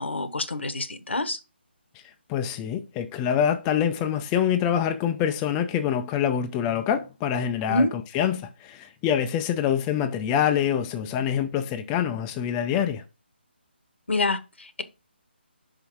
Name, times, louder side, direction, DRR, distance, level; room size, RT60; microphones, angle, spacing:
voice 1, 0.0-1.4 7.7-7.9 14.1-14.8, left 2 dB, 85° left, 1.2 m, -26 dB
voice 2, 2.3-13.0, left 9 dB, 15° left, 0.4 m, -25 dB
5.4 x 4.8 x 4.5 m
figure-of-eight pair, 160°, 6 cm